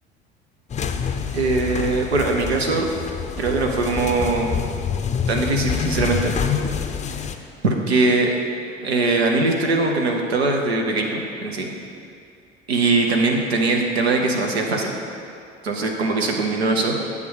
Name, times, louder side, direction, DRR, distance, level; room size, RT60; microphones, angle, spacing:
sound 1, 0.7-7.4, left 6 dB, 25° left, 0.5 m, -26 dB
voice 1, 1.3-2.9 3.4-4.5 5.3-6.3 7.6-8.4 8.8-11.7 12.7-14.9 15.6-16.9, right 3 dB, 85° right, 1 dB, 0.7 m, -21 dB
8.3 x 3.5 x 6.3 m, 2.4 s
figure-of-eight pair, 65°, 31 cm